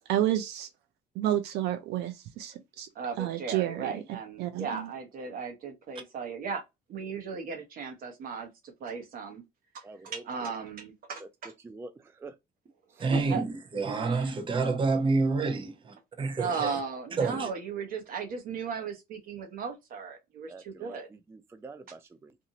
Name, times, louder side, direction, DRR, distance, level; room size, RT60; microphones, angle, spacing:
voice 1, 0.1-0.7 1.2-2.9 3.2-4.0 4.4-4.9, right 13 dB, 80° right, 0.5 m, -30 dB
voice 2, 2.9-6.6 6.9-9.4 9.7-11.5 13.0-13.4 14.0-14.3 16.4-21.1, right 5 dB, 55° right, 1.1 m, -36 dB
voice 3, 9.8-10.5 11.2-12.4 12.9-13.1 20.5-22.4, right 3 dB, 15° right, 0.3 m, -47 dB
voice 4, 13.0-16.8 17.2-17.5, right 3 dB, 30° right, 0.8 m, -28 dB
2.7 x 2.5 x 2.8 m
cardioid pair, 110°, 17 cm